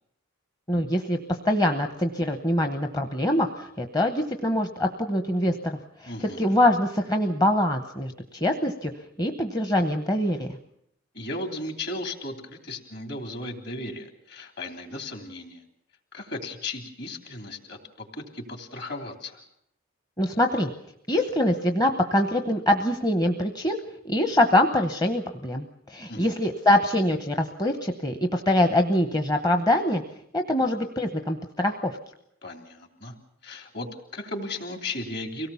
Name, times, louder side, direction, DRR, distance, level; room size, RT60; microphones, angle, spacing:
voice 1, 0.7-1.2 1.4-6.1 6.4-8.9 9.2-10.6 20.2-20.7 21.1-23.8 24.0-30.0 30.3-32.0, left 1 dB, 20° left, 5 dB, 0.9 m, -24 dB
voice 2, 6.1-6.4 11.1-15.6 16.1-19.4 26.1-26.4 32.4-33.1 33.4-35.5, left 2 dB, 50° left, 5 dB, 3.2 m, -36 dB
24.5 x 18.0 x 7.1 m, 0.75 s
head